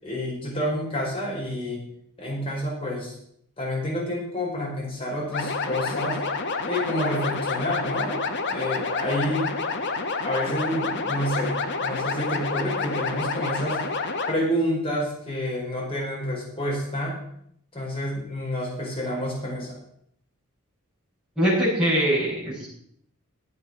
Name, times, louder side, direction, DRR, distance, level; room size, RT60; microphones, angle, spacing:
voice 1, 0.0-1.8 2.2-3.2 3.6-6.2 6.6-8.2 8.5-9.5 10.2-11.5 11.8-13.8 14.3-17.2 17.7-19.8, equal, 25° left, -4 dB, 4.7 m, -28 dB
sound 1, 5.3-14.3, left 4 dB, 50° left, 1.2 m, -28 dB
voice 2, 21.4-22.7, equal, ahead, -14 dB, 6.8 m, -22 dB
14.0 x 8.7 x 6.0 m, 0.69 s
head